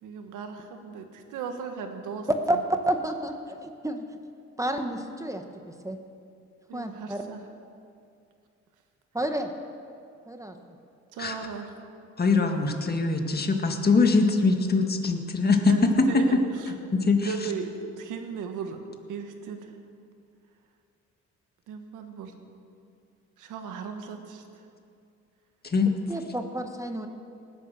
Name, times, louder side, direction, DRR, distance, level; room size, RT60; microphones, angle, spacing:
voice 1, 0.0-2.6 6.7-7.4 11.1-11.7 15.7-16.4 17.2-18.8 19.1-19.7 21.7-22.4 23.4-24.4, right 6 dB, 90° right, 6 dB, 1.7 m, -36 dB
voice 2, 2.9-4.0 4.6-6.0 6.7-7.2 9.1-9.5 10.3-10.5 26.1-27.1, right 1 dB, 10° right, 5 dB, 1.2 m, -30 dB
voice 3, 12.2-15.7 16.9-17.5 25.6-25.9, left 4 dB, 30° left, 4 dB, 1.9 m, -23 dB
18.5 x 10.5 x 6.8 m, 2.4 s
cardioid pair, 90°, 30 cm